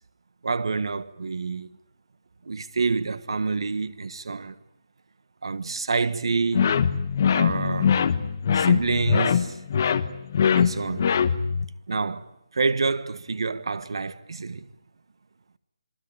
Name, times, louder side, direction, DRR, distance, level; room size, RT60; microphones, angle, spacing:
voice 1, 0.4-1.7 2.4-4.5 5.4-6.7 7.3-8.0 8.5-9.6 10.5-11.2 11.9-14.7, right 4 dB, 60° right, 1.5 m, -27 dB
sound 1, 6.5-11.7, left 7 dB, 30° left, 1.2 m, -22 dB
27.5 x 24.0 x 8.8 m
hypercardioid pair, 170°, 3 cm